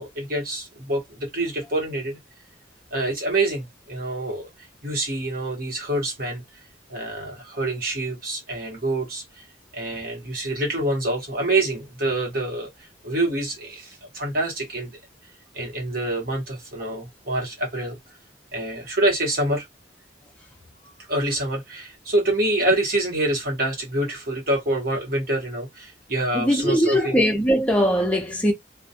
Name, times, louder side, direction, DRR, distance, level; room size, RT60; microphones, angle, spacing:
voice 1, 0.0-2.2 2.9-4.5 4.8-6.4 6.9-9.4 9.7-12.7 13.0-14.9 15.5-18.0 18.5-19.7 20.8-27.1, right 1 dB, 50° right, 1.0 m, -26 dB
voice 2, 26.3-28.5, equal, 5° left, 0.5 m, -20 dB
2.2 x 2.1 x 2.7 m
head